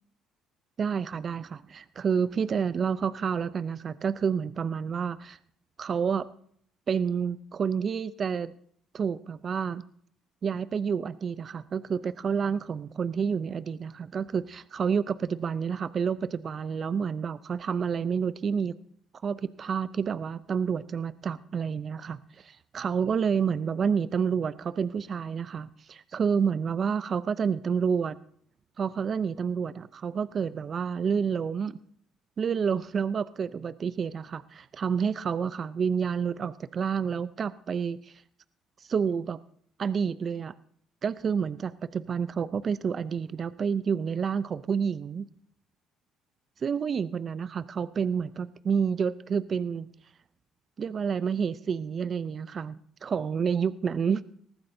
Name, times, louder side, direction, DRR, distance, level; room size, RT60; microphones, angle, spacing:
voice 1, 0.8-5.4 5.8-6.3 6.9-8.5 8.9-9.8 10.4-18.7 19.2-28.2 28.8-31.8 32.4-38.1 38.9-39.4 39.8-40.5 41.0-45.3 46.6-49.9 50.8-54.2, right 6 dB, 45° right, 15 dB, 0.5 m, -29 dB
20.0 x 14.5 x 2.7 m, 0.62 s
supercardioid pair, 70°, 0 cm